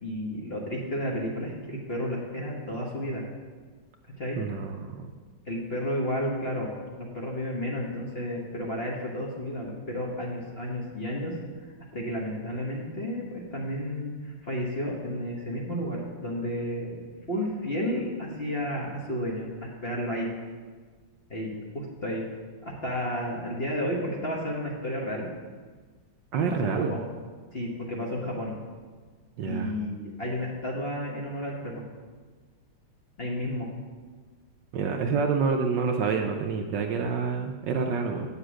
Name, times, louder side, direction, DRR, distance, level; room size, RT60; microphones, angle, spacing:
voice 1, 0.0-3.2 4.2-4.4 5.5-6.7 7.0-11.3 11.9-17.0 17.3-20.3 21.3-22.2 22.6-25.3 26.4-27.0 27.5-28.5 29.5-31.8 33.2-33.7, equal, 35° left, -3 dB, 1.1 m, -32 dB
voice 2, 4.4-5.1 26.3-26.9 29.4-29.7 34.7-38.3, right 5 dB, 70° right, 4 dB, 1.2 m, -27 dB
8.8 x 7.0 x 6.3 m, 1.5 s
omnidirectional pair, 2.4 m